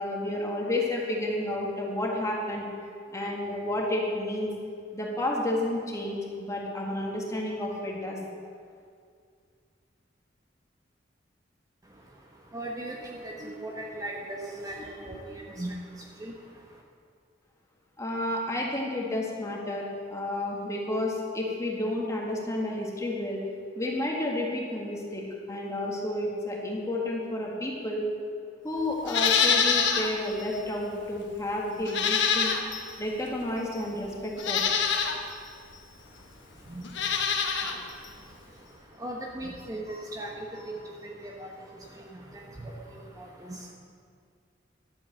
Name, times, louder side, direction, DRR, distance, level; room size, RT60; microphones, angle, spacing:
voice 1, 0.0-2.7 3.1-4.5 4.9-8.2 18.0-23.4 23.8-28.1 28.6-32.6 33.0-34.6, left 1 dB, 15° left, -2 dB, 1.8 m, -31 dB
voice 2, 11.8-16.8 36.0-43.7, right 1 dB, 20° right, -1 dB, 1.0 m, -40 dB
Livestock farm animals working animals, 29.0-30.1 30.5-30.6 31.8-32.9 33.7-33.8 34.4-35.2 36.8-37.8 38.0-38.1, left 6 dB, 90° left, 1.1 m, -25 dB
11.5 x 8.4 x 6.8 m, 2.2 s
head